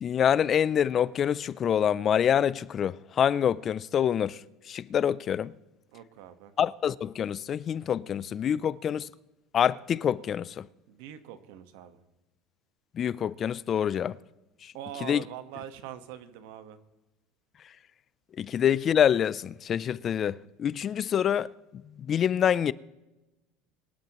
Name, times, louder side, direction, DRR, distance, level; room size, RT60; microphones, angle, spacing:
voice 1, 0.0-4.4 4.7-5.5 6.6-9.1 9.5-10.7 13.0-14.2 14.6-14.7 15.0-15.2 18.4-21.5 22.0-22.7, left 9 dB, 35° left, 0.4 m, -26 dB
voice 2, 5.9-6.5 10.9-12.0 14.7-16.8, right 11 dB, 80° right, 1.3 m, -43 dB
23.5 x 11.5 x 3.0 m
supercardioid pair, 135°, 0 cm